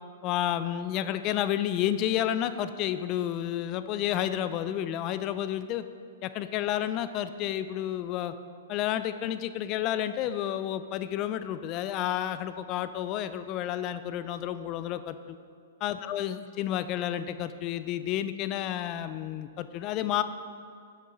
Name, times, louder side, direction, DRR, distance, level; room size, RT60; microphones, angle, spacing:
voice 1, 0.2-5.8 6.2-8.3 8.7-15.4 15.8-20.2, left 11 dB, 35° left, 12 dB, 0.3 m, -30 dB
6.5 x 6.4 x 4.1 m, 2.2 s
hypercardioid pair, 125°, 0 cm